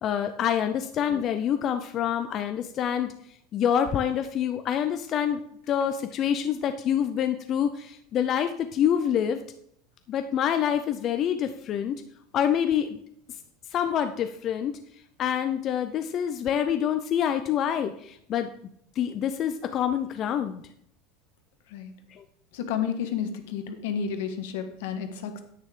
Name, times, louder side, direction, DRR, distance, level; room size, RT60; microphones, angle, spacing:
voice 1, 0.0-3.1 3.5-5.4 5.7-9.4 10.1-12.0 12.3-13.0 13.7-14.8 15.2-18.5 19.0-20.6 22.1-22.2, left 9 dB, 30° left, 8 dB, 0.4 m, -26 dB
voice 2, 22.5-25.4, left 7 dB, 75° left, 7 dB, 1.4 m, -31 dB
9.7 x 8.9 x 3.7 m, 0.70 s
supercardioid pair, 170°, 0 cm